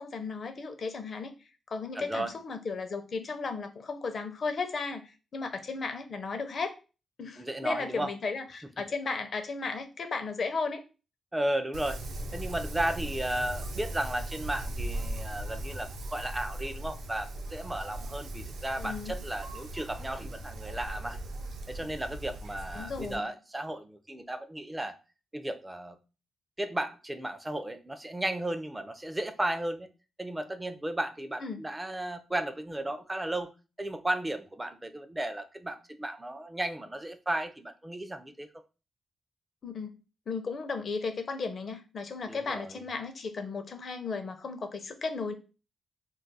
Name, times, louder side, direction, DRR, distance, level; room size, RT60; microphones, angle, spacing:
voice 1, 0.0-1.3 1.7-6.7 7.2-10.8 18.8-19.2 22.7-23.3 31.4-31.6 39.6-40.0 40.3-45.3, left 4 dB, 50° left, 7 dB, 0.5 m, -35 dB
voice 2, 2.0-2.3 7.4-8.1 11.3-12.0 12.3-21.2 21.7-25.0 25.3-26.0 26.6-29.9 30.2-33.5 33.8-38.5 42.3-42.7, right 1 dB, 10° right, 10 dB, 0.4 m, -34 dB
Wind, 11.7-23.2, right 1 dB, 75° right, 0.5 m, -38 dB
2.3 x 2.2 x 3.9 m, 0.32 s
cardioid pair, 110°, 0 cm